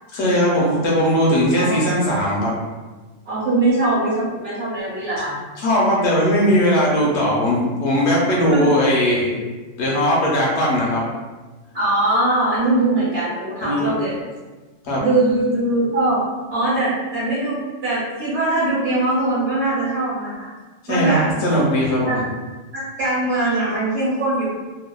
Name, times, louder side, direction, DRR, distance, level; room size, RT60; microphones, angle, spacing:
voice 1, 0.1-2.5 5.6-9.3 9.8-11.0 13.6-13.9 14.8-15.0 20.8-22.2, equal, 65° left, -4 dB, 1.0 m, -19 dB
voice 2, 3.2-5.4 8.5-8.7 11.7-14.2 15.0-16.2 16.5-20.5 20.9-21.2 22.0-22.2 22.7-24.6, right 2 dB, 55° right, -11 dB, 1.1 m, -21 dB
2.7 x 2.2 x 2.2 m, 1.2 s
omnidirectional pair, 1.3 m